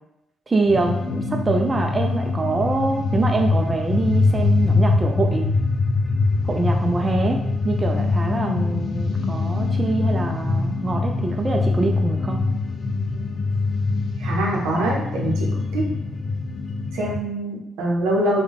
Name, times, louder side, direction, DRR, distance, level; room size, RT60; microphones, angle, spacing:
voice 1, 0.5-5.5 6.4-7.4 7.6-12.4, right 3 dB, 35° right, 2 dB, 0.4 m, -24 dB
sound 1, 0.7-17.2, left 3 dB, 60° left, 0.4 m, -23 dB
voice 2, 14.2-15.9 16.9-18.4, right 1 dB, 80° right, -2 dB, 0.7 m, -24 dB
3.4 x 2.2 x 3.6 m, 0.86 s
hypercardioid pair, 45°, 0 cm